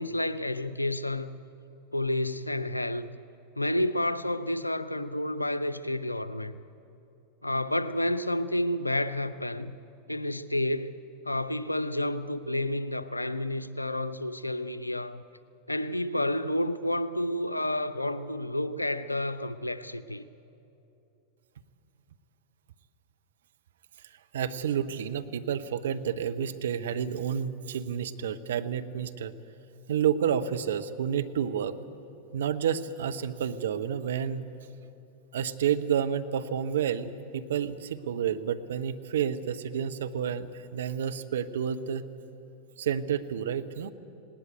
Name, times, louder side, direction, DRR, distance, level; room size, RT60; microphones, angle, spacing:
voice 1, 0.0-1.4 1.9-3.1 3.6-6.5 7.4-9.7 10.1-10.9 11.2-15.2 15.7-20.2, left 1 dB, 85° left, 0.6 m, -30 dB
voice 2, 24.3-29.3 29.9-31.7 32.3-34.4 35.3-42.1 42.8-43.9, right 8 dB, 60° right, 0.9 m, -30 dB
19.5 x 18.0 x 9.2 m
figure-of-eight pair, 90°, 0 cm